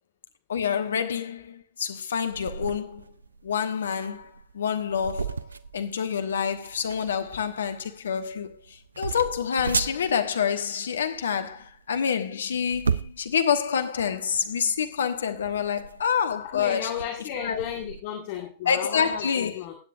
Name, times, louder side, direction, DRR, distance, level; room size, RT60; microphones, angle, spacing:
voice 1, 0.5-3.1 3.4-5.5 5.7-16.9 17.4-17.6 18.6-19.6, left 7 dB, 70° left, 1.1 m, -27 dB
sound 1, 2.3-18.0, right 5 dB, 80° right, 0.5 m, -36 dB
voice 2, 16.5-19.7, left 9 dB, 50° left, 2.0 m, -34 dB
16.0 x 8.9 x 2.6 m
figure-of-eight pair, 95°, 0 cm